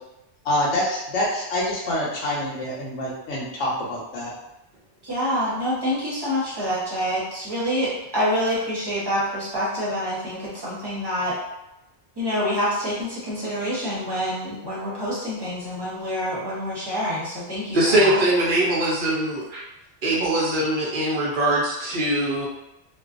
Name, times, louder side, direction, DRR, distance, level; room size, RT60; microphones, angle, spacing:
voice 1, 0.4-4.3, left 1 dB, 85° left, -5 dB, 1.0 m, -26 dB
voice 2, 5.0-11.3 12.2-18.2, equal, 25° right, -8 dB, 0.8 m, -27 dB
voice 3, 17.7-19.6 20.0-22.5, right 1 dB, 55° right, -5 dB, 0.6 m, -22 dB
2.5 x 2.2 x 2.4 m, 0.91 s
omnidirectional pair, 1.2 m